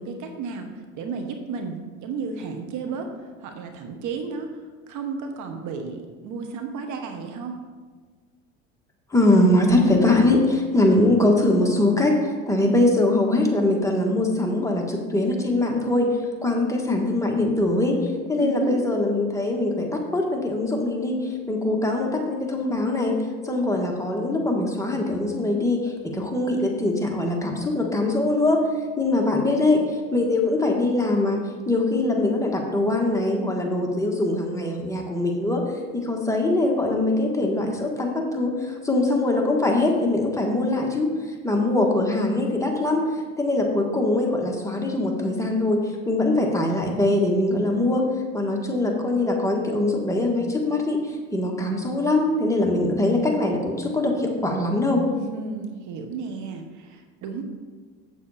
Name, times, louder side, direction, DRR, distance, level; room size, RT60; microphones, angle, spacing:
voice 1, 0.0-3.1 3.4-7.6 18.4-18.8 29.1-29.9 55.1-57.4, right 4 dB, 55° right, 5 dB, 1.3 m, -33 dB
voice 2, 9.1-16.1 16.4-18.0 18.3-23.2 23.4-28.6 29.0-29.8 30.1-35.6 35.9-41.1 41.4-43.0 43.4-48.0 48.3-55.0, left 2 dB, 10° left, 0 dB, 1.5 m, -22 dB
8.3 x 7.5 x 4.2 m, 1.5 s
supercardioid pair, 95°, 36 cm